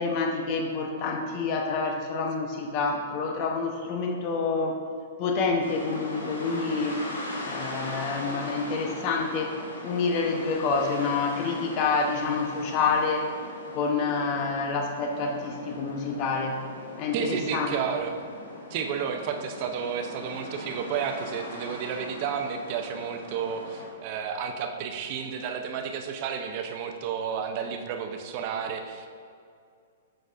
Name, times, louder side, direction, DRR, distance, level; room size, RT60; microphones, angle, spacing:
voice 1, 0.0-4.8 5.2-7.1 7.4-13.3 13.7-16.6 17.0-17.7, left 4 dB, 40° left, 3 dB, 0.9 m, -28 dB
sound 1, 5.6-23.9, left 1 dB, 85° left, 1.4 m, -40 dB
voice 2, 17.1-18.2 18.7-29.1, right 7 dB, 45° right, 5 dB, 0.6 m, -31 dB
7.0 x 6.3 x 2.6 m, 2.3 s
hypercardioid pair, 130°, 0 cm